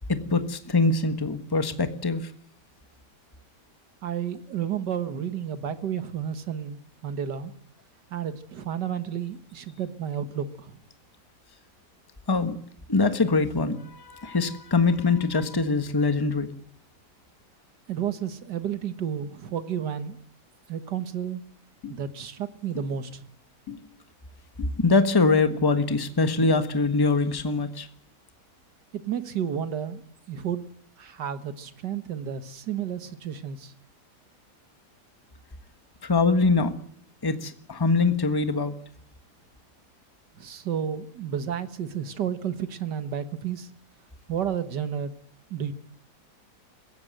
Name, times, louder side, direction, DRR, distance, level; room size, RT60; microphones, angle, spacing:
voice 1, 0.1-2.3 12.3-12.6 12.9-16.5 24.8-27.9 36.0-36.7 37.2-38.7, left 3 dB, 15° left, 9 dB, 1.3 m, -23 dB
voice 2, 4.0-7.5 8.1-10.8 17.9-20.2 20.7-21.4 21.9-23.2 28.9-30.0 30.3-30.6 31.0-33.7 40.3-43.7 44.3-45.1 45.5-45.7, right 8 dB, 85° right, 11 dB, 2.0 m, -31 dB
sound 1, 21.8-22.0 22.7-22.9 23.7-23.8 24.6-24.7 25.5-25.6 26.4-26.6, left 8 dB, 65° left, 3.1 m, -38 dB
22.0 x 16.5 x 7.8 m, 0.62 s
omnidirectional pair, 1.8 m